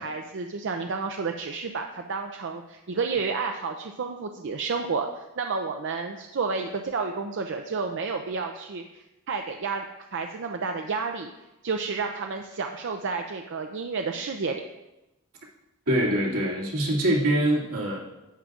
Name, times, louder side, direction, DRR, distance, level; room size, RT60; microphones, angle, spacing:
voice 1, 0.0-9.8 10.1-11.3 11.6-14.6, right 4 dB, 55° right, 4 dB, 0.5 m, -31 dB
voice 2, 15.9-18.0, right 1 dB, 80° right, -5 dB, 2.4 m, -24 dB
11.0 x 8.8 x 2.4 m, 0.99 s
head